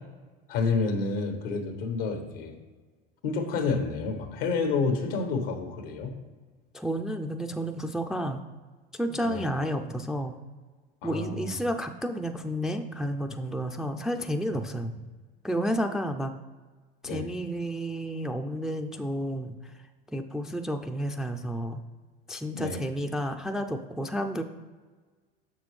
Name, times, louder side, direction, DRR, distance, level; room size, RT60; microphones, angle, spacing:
voice 1, 0.5-2.6 3.2-6.1 9.2-9.5 11.0-11.5 17.0-17.3 22.5-22.8, left 4 dB, 75° left, 5 dB, 1.3 m, -29 dB
voice 2, 6.7-8.4 8.9-10.4 11.0-14.9 15.4-16.4 17.0-19.7 20.1-21.8 22.3-24.4, equal, ahead, 6 dB, 0.4 m, -31 dB
6.7 x 6.1 x 3.2 m, 1.4 s
hypercardioid pair, 95°, 29 cm